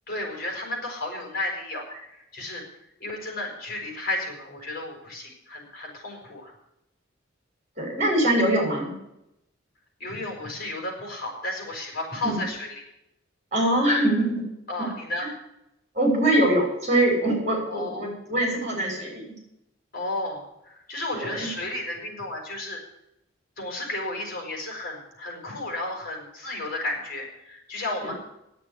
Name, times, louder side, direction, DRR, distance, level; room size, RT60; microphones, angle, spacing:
voice 1, 0.1-2.6 3.0-6.5 10.0-12.8 14.7-15.3 17.7-18.1 19.9-22.8 23.6-28.1, left 2 dB, 50° left, 0 dB, 5.4 m, -33 dB
voice 2, 7.8-8.9 12.2-12.4 13.5-14.3 14.8-14.9 15.2-15.3 15.9-19.2 21.1-21.5, right 1 dB, 35° right, 0 dB, 6.4 m, -23 dB
10.0 x 8.5 x 9.8 m, 0.84 s
head